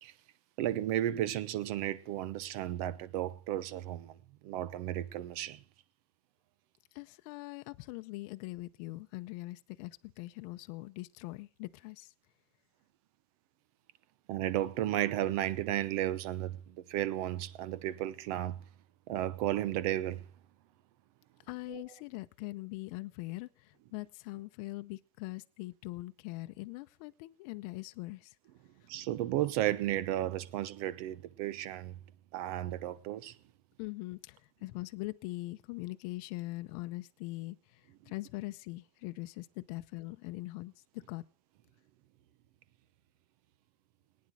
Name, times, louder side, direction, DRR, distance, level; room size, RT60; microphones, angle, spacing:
voice 1, 0.6-4.2 4.4-5.6 14.3-18.6 19.1-20.2 21.7-21.8 28.9-32.0 32.3-33.4, right 13 dB, 70° right, 1.0 m, -33 dB
voice 2, 6.9-12.1 21.5-28.3 33.8-41.2, left 21 dB, 65° left, 0.6 m, -42 dB
19.0 x 9.6 x 4.7 m
supercardioid pair, 135°, 20 cm